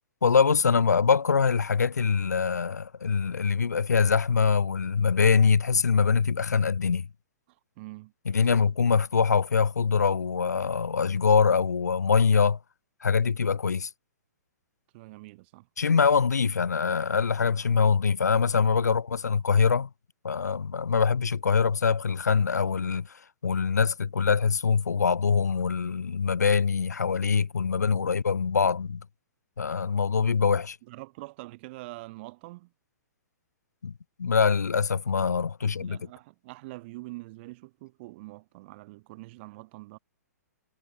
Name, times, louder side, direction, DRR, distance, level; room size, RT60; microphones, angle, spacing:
voice 1, 0.2-7.1 8.3-12.6 13.0-13.9 15.8-19.9 20.2-23.0 23.4-29.0 29.6-30.8 33.8-33.9 34.2-36.0, left 5 dB, 75° left, 0.9 m, -24 dB
voice 2, 7.8-8.1 8.5-8.7 14.9-15.7 27.9-28.1 30.8-32.7 35.6-40.0, right 22 dB, 45° right, 7.0 m, -44 dB
figure-of-eight pair, 115°, 9 cm